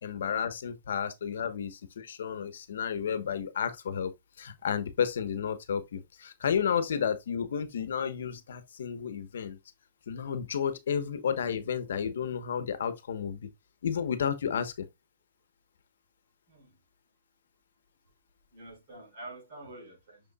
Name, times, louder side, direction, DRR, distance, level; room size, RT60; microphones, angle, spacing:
voice 1, 0.0-4.1 4.4-9.6 10.1-13.4 13.8-14.9, left 7 dB, 75° left, 1.1 m, -32 dB
voice 2, 16.5-16.8 18.5-20.2, right 2 dB, 35° right, 5.3 m, -47 dB
6.9 x 6.3 x 2.3 m
hypercardioid pair, 180°, 0 cm